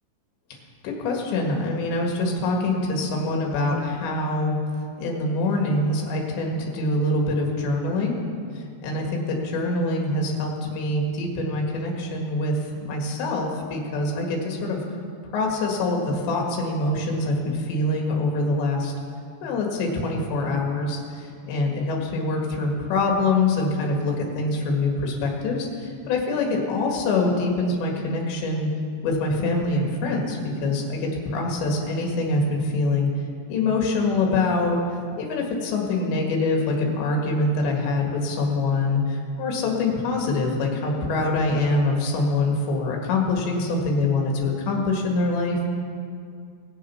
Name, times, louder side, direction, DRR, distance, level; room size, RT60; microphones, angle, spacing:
voice 1, 0.8-4.6 5.0-8.2 8.8-12.6 12.9-14.8 15.3-18.9 19.4-28.7 29.0-33.1 33.5-34.8 35.2-45.7, left 2 dB, 80° left, 0 dB, 4.0 m, -24 dB
20.0 x 7.4 x 6.0 m, 2.3 s
omnidirectional pair, 5.1 m